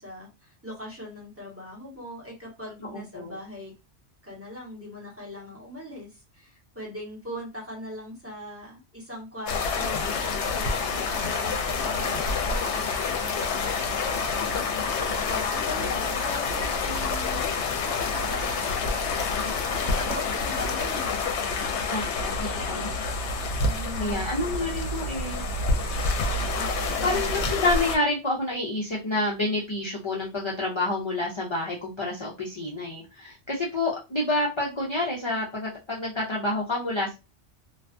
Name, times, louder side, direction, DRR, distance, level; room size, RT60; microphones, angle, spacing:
voice 1, 0.0-3.7 4.2-10.1 10.5-14.8 15.2-17.4 18.1-18.9 20.0-21.7 23.6-26.0 26.5-27.4, left 1 dB, 15° right, -4 dB, 0.9 m, -41 dB
voice 2, 2.8-3.4 21.9-22.9 24.0-25.4 27.0-37.1, left 2 dB, 40° left, -4 dB, 0.4 m, -28 dB
sound 1, 9.5-28.0, left 4 dB, 75° left, 0.9 m, -28 dB
2.4 x 2.3 x 2.4 m, 0.27 s
omnidirectional pair, 1.2 m